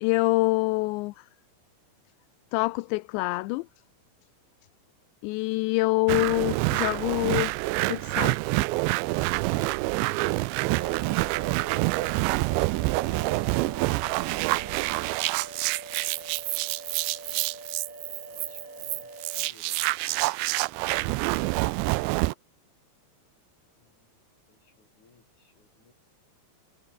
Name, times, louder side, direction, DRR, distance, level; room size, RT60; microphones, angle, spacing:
voice 1, 0.0-1.2 2.5-3.7 5.2-7.5 7.9-8.3, left 23 dB, 80° left, 2.8 m, -25 dB
sound 1, 6.1-22.3, right 22 dB, 85° right, 2.8 m, -27 dB
voice 2, 10.7-13.3 14.1-14.9 16.1-16.4 18.2-19.9 23.8-24.1 24.5-25.9, left 4 dB, 40° left, 7.1 m, -61 dB
sound 2, 10.7-19.5, right 2 dB, 15° right, 4.7 m, -45 dB
omnidirectional pair, 5.2 m